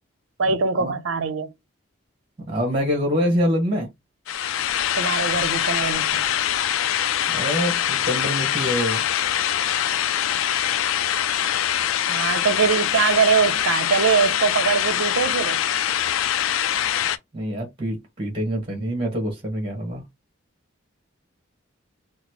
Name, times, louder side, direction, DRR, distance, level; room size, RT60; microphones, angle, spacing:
voice 1, 0.4-1.5 4.9-6.2 12.1-15.6, right 6 dB, 75° right, 0.6 m, -22 dB
voice 2, 2.5-3.9 7.3-9.0 17.3-20.0, equal, 25° right, 1.3 m, -25 dB
sound 1, 4.3-17.2, left 10 dB, 80° left, 0.4 m, -23 dB
3.9 x 2.1 x 3.0 m
head